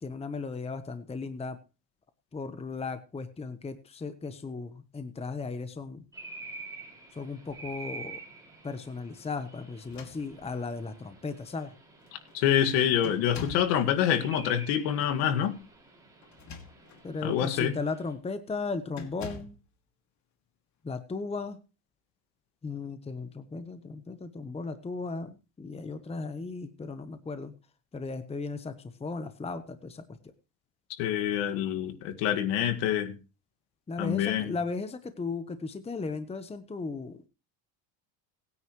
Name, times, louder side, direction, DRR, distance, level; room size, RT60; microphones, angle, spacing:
voice 1, 0.0-1.6 2.3-6.0 7.1-8.2 8.6-11.7 17.0-19.5 20.8-21.6 22.6-27.5 27.9-28.7 29.0-30.0 33.9-37.2, left 4 dB, 15° left, 10 dB, 1.0 m, -36 dB
sound 1, 6.1-18.1, right 3 dB, 10° right, 5.5 m, -48 dB
sound 2, 9.8-10.7 11.6-11.7 12.0-12.4 13.0-13.8 16.2-17.1 17.6-17.8 18.9-19.6, left 4 dB, 40° left, 2.5 m, -44 dB
voice 2, 12.1-15.6 17.2-17.8 30.9-33.1 34.0-34.5, left 10 dB, 85° left, 7 dB, 2.1 m, -26 dB
23.0 x 9.6 x 3.2 m, 0.32 s
cardioid pair, 125°, 42 cm